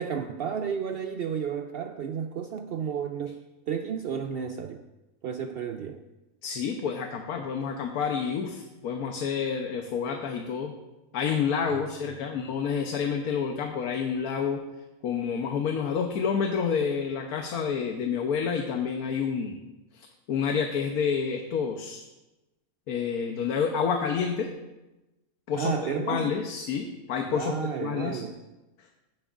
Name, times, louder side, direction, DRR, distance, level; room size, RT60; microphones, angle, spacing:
voice 1, 0.0-4.8 5.2-6.0 11.7-12.2 25.5-26.3 27.3-28.4, right 7 dB, 85° right, 6 dB, 0.5 m, -32 dB
voice 2, 6.4-10.7 11.1-14.6 15.0-19.6 19.9-22.0 22.9-24.5 25.5-25.7 26.0-27.5 27.8-28.2 28.8-28.9, left 6 dB, 80° left, 3 dB, 1.3 m, -29 dB
15.5 x 8.9 x 2.5 m, 1.0 s
omnidirectional pair, 1.5 m